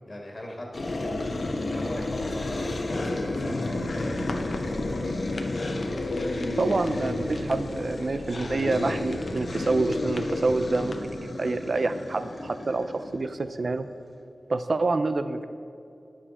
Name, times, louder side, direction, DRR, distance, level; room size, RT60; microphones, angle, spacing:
voice 1, 0.1-4.5, left 1 dB, 35° left, -1 dB, 1.9 m, -39 dB
sound 1, 0.7-13.6, left 2 dB, 55° left, 1.2 m, -31 dB
sound 2, 3.9-11.0, left 2 dB, 70° left, 0.9 m, -44 dB
voice 2, 6.6-13.9 14.5-15.4, right 3 dB, 55° right, 11 dB, 0.5 m, -27 dB
13.0 x 10.0 x 4.3 m, 2.7 s
wide cardioid pair, 85°, 0 cm